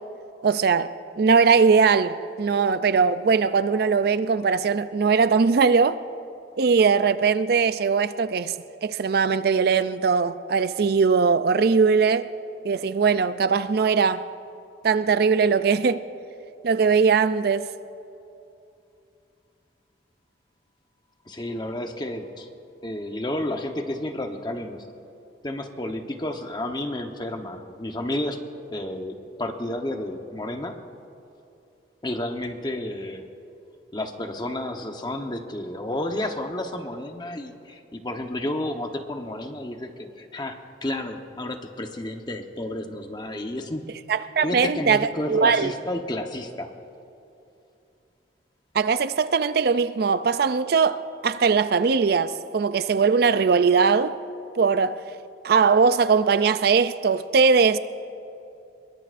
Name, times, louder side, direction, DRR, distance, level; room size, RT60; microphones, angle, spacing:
voice 1, 0.4-0.9 1.2-6.0 6.6-8.5 8.8-12.3 12.6-14.2 14.8-16.0 16.6-17.7 44.1-45.7 48.7-54.1 54.6-55.0 55.4-57.8, right 5 dB, 60° right, 0.4 m, -20 dB
voice 2, 21.3-22.5 22.8-24.9 25.4-28.4 28.7-30.7 32.0-33.3 33.9-43.9 44.4-46.7, left 1 dB, 25° left, 1.0 m, -31 dB
23.0 x 22.0 x 2.6 m
head